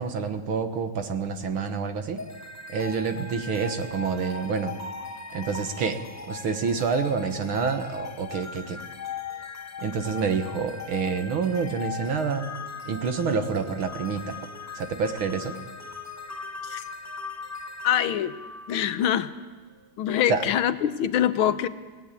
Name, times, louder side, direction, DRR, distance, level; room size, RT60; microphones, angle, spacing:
voice 1, 0.0-2.2 2.7-4.8 5.3-6.0 6.3-8.8 9.8-12.5 12.9-14.4 14.8-15.6 20.3-20.4, right 5 dB, 75° right, 7 dB, 2.3 m, -28 dB
sound 1, 2.2-19.3, left 4 dB, 10° left, 1.2 m, -39 dB
voice 2, 17.8-18.4 18.7-19.3 20.0-21.7, left 10 dB, 80° left, 12 dB, 1.8 m, -24 dB
27.0 x 18.0 x 8.5 m, 1.5 s
omnidirectional pair, 2.3 m